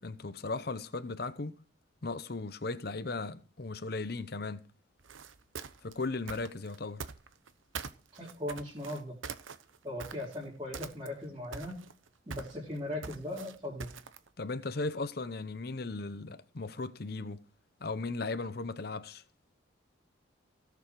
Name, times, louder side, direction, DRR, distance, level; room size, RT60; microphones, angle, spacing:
voice 1, 0.0-1.6 2.0-4.7 5.8-7.1 14.4-17.4 17.8-19.2, left 3 dB, 50° left, 0.8 m, -37 dB
sound 1, 5.0-7.5 7.8-10.4 10.7-11.3 11.5-14.3, right 5 dB, 80° right, 0.9 m, -43 dB
voice 2, 8.1-9.2 9.8-11.8 12.3-13.9, left 1 dB, 25° right, 4.2 m, -39 dB
17.5 x 6.9 x 4.7 m
head